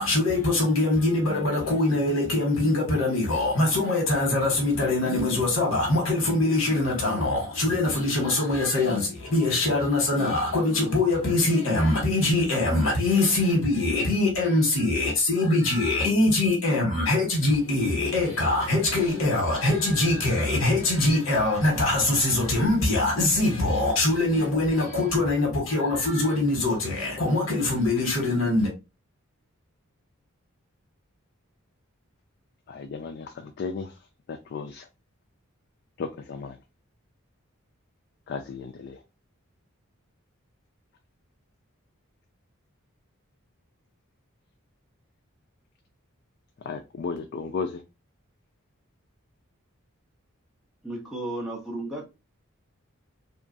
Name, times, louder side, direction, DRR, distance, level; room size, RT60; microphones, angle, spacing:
voice 1, 0.0-28.7, left 2 dB, 70° left, 1.2 m, -23 dB
voice 2, 32.7-33.9 34.3-34.9 36.0-36.6 38.3-39.0 46.6-47.8, left 5 dB, 50° left, 0.3 m, -34 dB
voice 3, 50.8-52.0, right 1 dB, ahead, 0.7 m, -33 dB
2.9 x 2.4 x 2.5 m
head